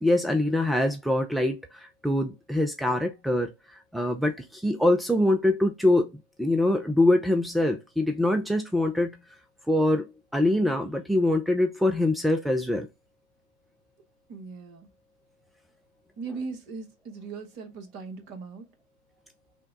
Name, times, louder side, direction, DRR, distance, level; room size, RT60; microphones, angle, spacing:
voice 1, 0.0-3.5 3.9-6.1 6.4-9.2 9.7-12.9, left 1 dB, ahead, 0.5 m, -24 dB
voice 2, 14.3-14.9 16.2-18.7, right 4 dB, 45° right, 1.2 m, -39 dB
5.7 x 2.3 x 3.8 m
figure-of-eight pair, 90°, 0 cm